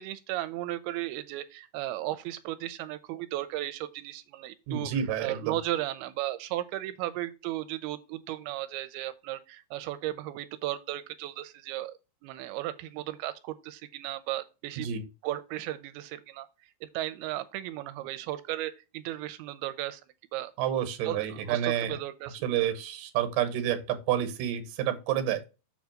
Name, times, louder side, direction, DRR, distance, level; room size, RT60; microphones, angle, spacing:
voice 1, 0.0-4.9 5.2-14.9 15.2-16.5 16.8-20.0 20.3-20.5 21.0-22.5, right 15 dB, 85° right, 2.5 m, -35 dB
voice 2, 4.7-5.6 14.8-15.1 20.6-22.0 22.4-25.4, right 10 dB, 70° right, 2.5 m, -29 dB
7.1 x 3.5 x 6.2 m
omnidirectional pair, 4.4 m